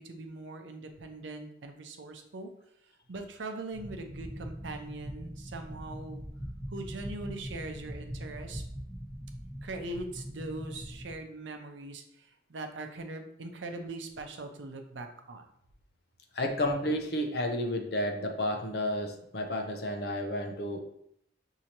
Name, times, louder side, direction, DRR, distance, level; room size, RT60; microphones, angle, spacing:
voice 1, 0.0-2.5 3.1-6.2 6.7-8.6 9.6-15.5, right 2 dB, 85° right, 5 dB, 0.6 m, -41 dB
sound 1, 3.7-11.1, equal, 20° left, 1.6 m, -42 dB
voice 2, 16.3-20.8, left 1 dB, 55° left, 3 dB, 0.6 m, -31 dB
6.2 x 2.8 x 2.9 m, 0.74 s
head